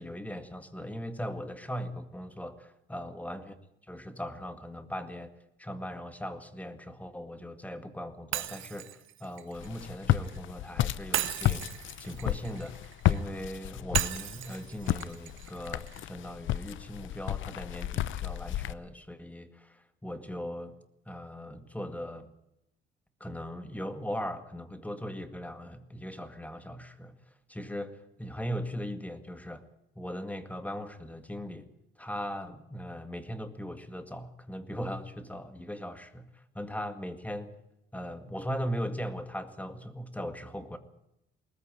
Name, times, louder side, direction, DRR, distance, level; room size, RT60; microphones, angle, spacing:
voice 1, 0.0-3.5 3.9-5.3 5.6-20.8 21.1-22.3 23.2-27.1 27.5-29.7 30.0-31.7 32.0-37.6 37.9-40.8, equal, 5° left, 10 dB, 2.0 m, -39 dB
Shatter, 8.3-10.4 11.1-13.2 13.9-16.0, right 13 dB, 80° right, 1.4 m, -36 dB
Walk footsteps, 9.5-18.7, left 13 dB, 75° left, 0.8 m, -32 dB
20.0 x 14.5 x 8.9 m, 0.86 s
cardioid pair, 90°, 20 cm